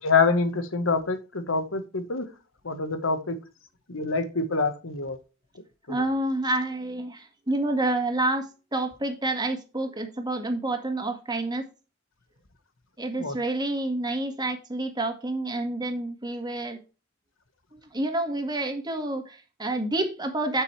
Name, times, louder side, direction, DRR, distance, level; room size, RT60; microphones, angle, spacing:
voice 1, 0.0-2.3 2.6-3.4 3.9-5.2 5.9-6.0 13.2-13.4, left 4 dB, 90° left, 1.5 m, -26 dB
voice 2, 5.9-8.5 8.7-11.6 13.0-16.8 17.7-20.6, right 2 dB, 20° right, 1.8 m, -28 dB
8.2 x 7.9 x 3.3 m
head